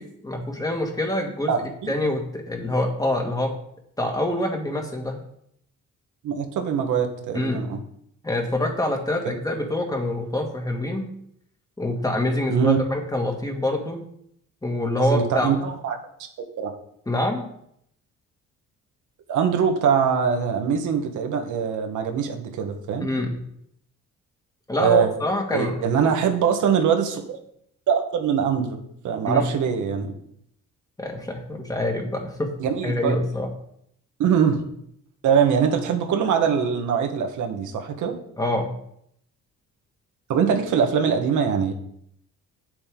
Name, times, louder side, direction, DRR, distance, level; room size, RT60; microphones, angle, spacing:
voice 1, 0.0-3.5 4.0-5.2 7.3-7.7 8.2-11.1 11.8-14.0 14.6-15.5 17.1-17.5 23.0-23.4 24.7-25.8 29.3-29.4 31.0-32.5 32.8-33.5 38.4-38.7, left 1 dB, 10° left, 2 dB, 2.1 m, -26 dB
voice 2, 1.5-1.9 6.2-7.8 9.2-9.3 12.5-12.8 15.0-16.0 16.4-16.7 19.3-23.1 24.8-25.1 25.5-27.4 27.9-28.8 29.0-30.1 32.6-33.2 34.2-34.6 35.2-38.1 40.3-41.7, right 7 dB, 80° right, 4 dB, 1.6 m, -22 dB
8.9 x 8.0 x 3.9 m, 0.71 s
cardioid pair, 90°, 30 cm